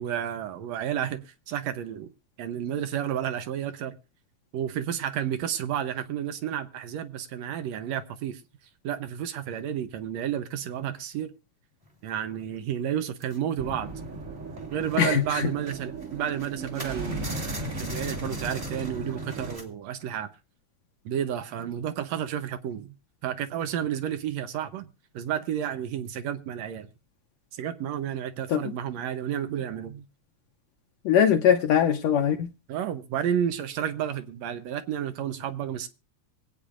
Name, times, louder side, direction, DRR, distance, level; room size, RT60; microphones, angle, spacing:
voice 1, 0.0-2.1 2.4-4.0 4.5-8.4 8.8-11.3 12.0-13.9 14.7-20.3 21.1-22.9 23.2-26.9 27.5-30.0 32.7-35.9, right 9 dB, 75° right, 1.9 m, -31 dB
sound 1, 11.8-11.9 12.2-12.4 13.1-14.2 14.6-19.7, right 1 dB, 20° right, 1.1 m, -42 dB
sound 2, 13.6-19.6, right 2 dB, 35° right, 1.4 m, -36 dB
voice 2, 15.0-15.5 28.5-28.7 31.1-32.5, left 9 dB, 75° left, 1.8 m, -22 dB
25.0 x 8.6 x 2.5 m
omnidirectional pair, 3.3 m